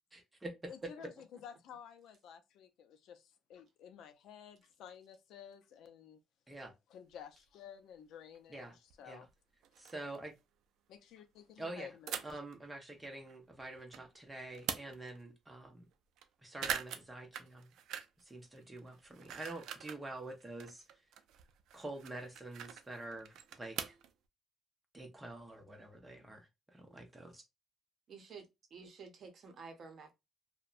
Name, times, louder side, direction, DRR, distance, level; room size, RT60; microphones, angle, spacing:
voice 1, 0.1-0.5 6.5-6.7 8.5-8.7 9.1-9.2 9.8-10.3 11.6-11.9 12.2-15.9 16.4-17.7 18.2-20.8 21.7-24.0 24.9-27.4, right 2 dB, 10° right, 0.8 m, -47 dB
voice 2, 0.7-6.2 6.9-9.3 10.9-12.2, left 8 dB, 80° left, 0.4 m, -53 dB
sound 1, 7.1-7.2 8.3-8.4 8.9-9.0 9.3-9.4 9.6-10.2 12.1-12.5 13.0-14.0 14.4-15.2 15.6-15.7 15.9-16.2 16.5-18.3 18.6-20.0 20.4-24.1, right 9 dB, 80° right, 0.3 m, -43 dB
voice 3, 28.1-30.2, right 5 dB, 50° right, 0.7 m, -51 dB
2.7 x 2.1 x 2.3 m
cardioid pair, 140°, 0 cm